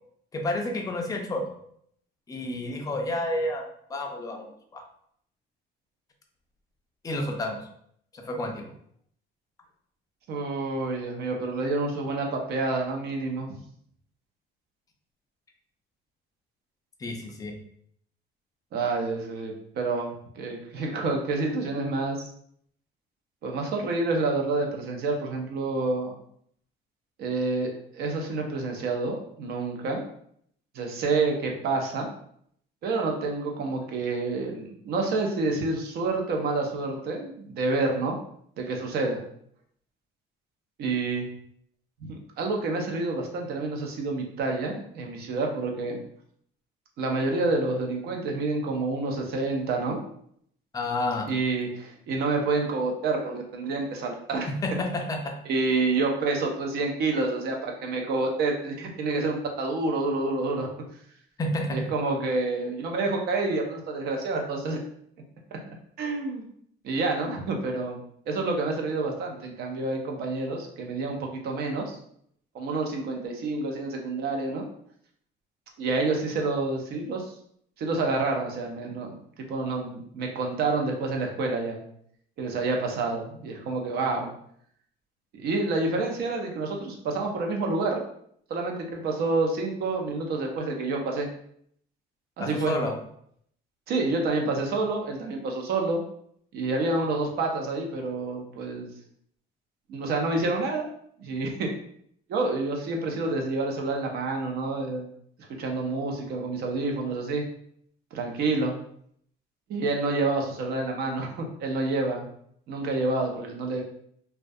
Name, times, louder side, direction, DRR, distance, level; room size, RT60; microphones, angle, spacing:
voice 1, 0.3-1.5 2.3-3.6 3.9-4.8 7.0-7.6 8.1-8.6 17.0-17.5 50.7-51.3 54.5-55.3 61.4-61.8 92.4-92.9, left 1 dB, 20° left, 2 dB, 0.3 m, -30 dB
voice 2, 10.3-13.6 18.7-20.1 20.4-22.2 23.4-26.1 27.2-30.0 30.7-32.1 32.8-38.2 38.6-39.2 40.8-41.3 42.0-46.0 47.0-50.0 51.3-54.5 55.5-60.7 61.7-64.8 66.0-66.5 66.8-68.0 68.3-72.0 72.5-74.7 75.8-77.3 77.8-79.1 79.5-81.8 82.4-84.3 85.3-88.0 88.5-91.3 92.4-92.7 93.9-96.0 96.5-98.9 99.9-100.9 101.2-101.7 102.3-105.1 105.6-107.4 108.1-108.7 109.7-112.3 112.7-113.8, right 3 dB, 55° right, 2 dB, 0.5 m, -28 dB
2.2 x 2.2 x 2.6 m, 0.67 s
cardioid pair, 155°, 19 cm